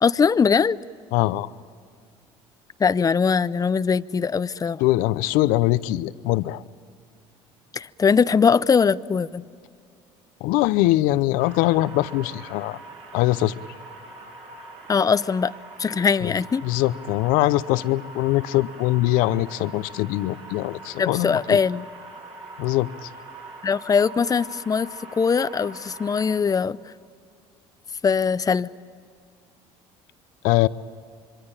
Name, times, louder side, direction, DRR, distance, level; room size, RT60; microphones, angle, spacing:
voice 1, 0.0-0.8 2.8-4.8 7.7-9.4 14.9-15.5 15.8-16.6 21.0-21.9 23.6-24.9 25.2-26.8 28.0-28.7, left 6 dB, 25° left, 0.6 m, -21 dB
voice 2, 1.1-1.5 4.8-6.6 10.4-12.8 13.1-13.5 16.2-16.3 16.6-21.6 22.6-23.1 30.4-30.7, left 17 dB, 75° left, 0.7 m, -22 dB
sound 1, 11.4-26.4, right 2 dB, 40° right, 6.1 m, -43 dB
26.0 x 23.0 x 9.0 m
supercardioid pair, 75°, 14 cm